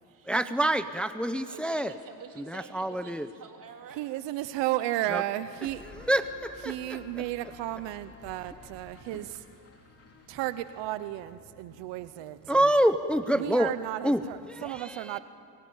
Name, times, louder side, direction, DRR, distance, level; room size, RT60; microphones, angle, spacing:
voice 1, 0.2-1.9 2.4-3.3 5.1-5.2 5.6-7.2 12.5-13.7 14.0-15.2, right 1 dB, ahead, 10 dB, 0.7 m, -27 dB
voice 2, 1.5-4.5, right 6 dB, 50° right, 2 dB, 3.6 m, -48 dB
voice 3, 4.0-5.8 6.7-9.4 10.3-12.6 13.4-15.2, right 15 dB, 90° right, 12 dB, 0.8 m, -33 dB
sound 1, 5.6-13.0, left 3 dB, 35° left, 4.0 m, -53 dB
24.0 x 22.0 x 8.8 m, 2.7 s
cardioid pair, 100°, 42 cm